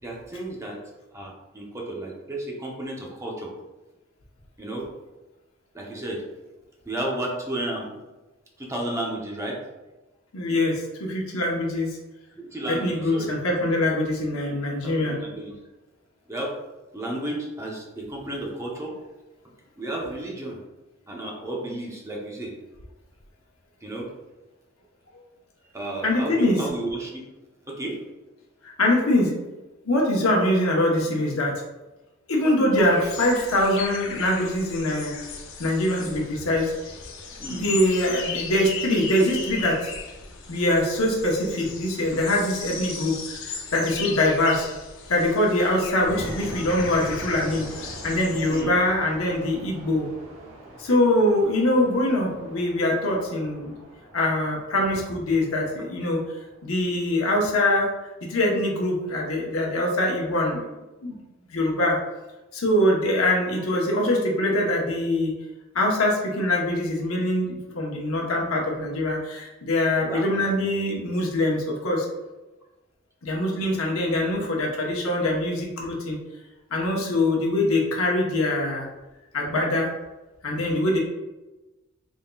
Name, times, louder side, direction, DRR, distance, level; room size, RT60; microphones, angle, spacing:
voice 1, 0.0-0.8 1.1-3.5 4.6-4.9 5.7-6.2 6.9-8.0 8.6-9.6 12.4-13.3 14.8-15.6 16.3-16.5 16.9-18.9 19.8-20.6 21.1-22.5 23.8-24.1 25.7-27.3 27.7-28.0 37.4-37.6 48.5-48.7 70.1-70.3, right 1 dB, 15° right, -2 dB, 0.7 m, -32 dB
voice 2, 10.3-11.9 12.7-15.2 26.0-26.6 28.6-29.3 29.8-31.5 32.3-35.1 35.6-36.7 37.5-39.9 40.5-43.4 43.7-44.7 45.1-50.1 50.8-53.7 54.1-56.2 56.6-57.9 58.2-60.6 61.0-61.2 61.5-62.0 62.5-65.3 65.7-72.1 73.2-76.2 76.7-78.9 79.3-79.9 80.4-81.0, left 1 dB, 80° left, -2 dB, 0.9 m, -23 dB
sound 1, 32.7-48.6, left 5 dB, 60° left, 0.6 m, -37 dB
sound 2, 46.0-56.9, equal, 70° right, 1.0 m, -42 dB
3.9 x 3.6 x 2.3 m, 1.1 s
head